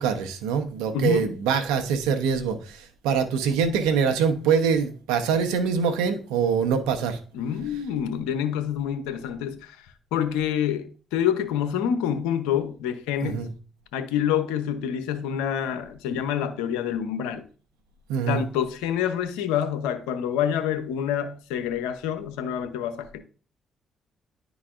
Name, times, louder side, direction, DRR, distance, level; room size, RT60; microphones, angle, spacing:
voice 1, 0.0-7.2 13.2-13.5 18.1-18.4, right 6 dB, 90° right, 0.9 m, -24 dB
voice 2, 0.9-1.4 7.3-9.8 10.1-13.5 13.9-17.4 18.3-23.2, left 9 dB, 90° left, 0.7 m, -27 dB
10.5 x 4.0 x 2.5 m
supercardioid pair, 55°, 0 cm